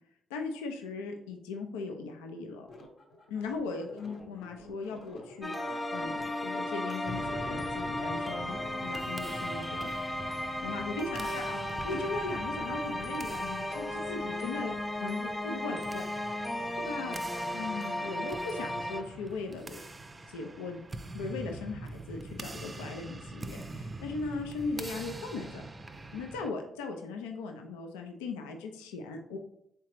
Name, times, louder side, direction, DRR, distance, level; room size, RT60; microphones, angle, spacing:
voice 1, 0.3-2.7 3.3-9.9 10.6-16.0 16.8-17.2 17.5-19.8 20.3-20.8 21.1-25.6 26.1-29.4, left 4 dB, 90° left, 4 dB, 0.3 m, -38 dB
sound 1, 2.7-9.4, left 1 dB, 60° left, 0.8 m, -50 dB
sound 2, 5.4-19.0, left 1 dB, 15° left, 0.6 m, -35 dB
sound 3, 7.0-26.5, right 2 dB, 30° right, 0.4 m, -44 dB
3.7 x 3.3 x 3.0 m, 0.76 s
hypercardioid pair, 50°, 0 cm